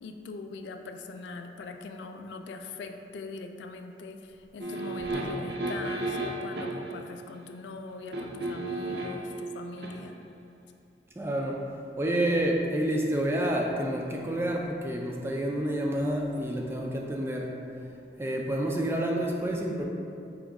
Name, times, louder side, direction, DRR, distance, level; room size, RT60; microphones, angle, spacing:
voice 1, 0.0-10.2, left 3 dB, 85° left, 6 dB, 0.3 m, -41 dB
sound 1, 4.6-6.9 8.1-9.3 9.8-9.9, right 2 dB, 65° right, 0.5 m, -33 dB
voice 2, 11.2-17.6 18.2-19.8, right 1 dB, 15° right, 0 dB, 0.3 m, -29 dB
4.9 x 3.0 x 3.5 m, 2.5 s
head